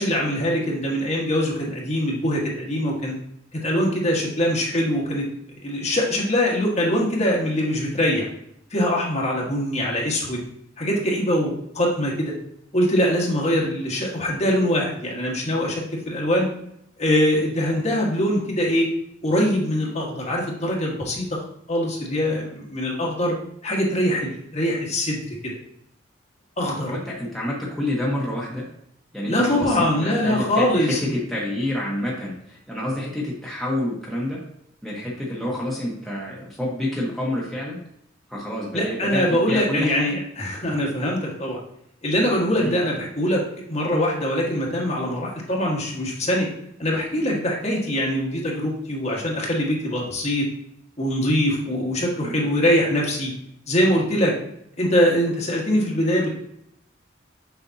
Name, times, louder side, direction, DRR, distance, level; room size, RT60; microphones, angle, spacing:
voice 1, 0.0-3.1 3.5-5.3 5.6-8.3 8.7-10.4 10.8-12.3 12.7-16.5 17.0-18.9 19.2-21.3 21.7-23.4 23.6-25.5 26.6-26.9 29.3-31.0 38.7-41.6 42.0-43.4 43.7-46.5 46.8-50.5 51.0-53.3 53.7-54.3 54.8-56.3, equal, 35° left, -3 dB, 1.4 m, -23 dB
voice 2, 26.9-28.6 29.1-34.4 34.8-37.8 38.3-40.2 42.6-42.7 52.2-52.4, left 1 dB, ahead, -6 dB, 1.1 m, -28 dB
6.8 x 5.1 x 2.7 m, 0.73 s
head